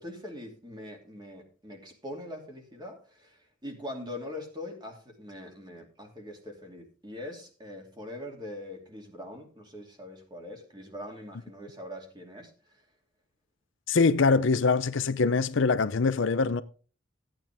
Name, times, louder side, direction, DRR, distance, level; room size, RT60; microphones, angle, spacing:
voice 1, 0.0-12.8, left 1 dB, 20° right, 2.8 m, -42 dB
voice 2, 13.9-16.6, left 4 dB, 70° left, 0.6 m, -23 dB
14.5 x 9.0 x 3.5 m
head